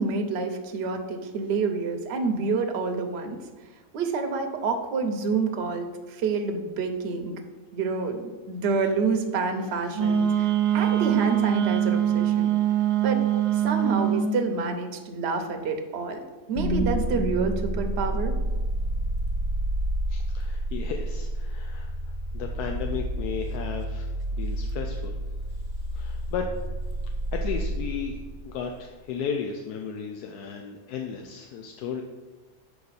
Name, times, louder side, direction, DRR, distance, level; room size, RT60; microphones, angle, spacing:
voice 1, 0.0-3.4 3.9-7.3 7.7-12.5 13.0-13.2 13.5-16.2 16.5-18.4, right 4 dB, 55° right, 5 dB, 0.9 m, -28 dB
Wind instrument woodwind instrument, 9.9-14.3, right 10 dB, 85° right, 1.3 m, -23 dB
sound 1, 16.5-28.7, right 1 dB, 35° right, 0.9 m, -29 dB
voice 2, 20.1-21.9 22.3-25.2 25.9-26.5 27.3-32.0, left 6 dB, 85° left, 3 dB, 1.1 m, -34 dB
6.9 x 4.9 x 4.1 m, 1.3 s
omnidirectional pair, 1.6 m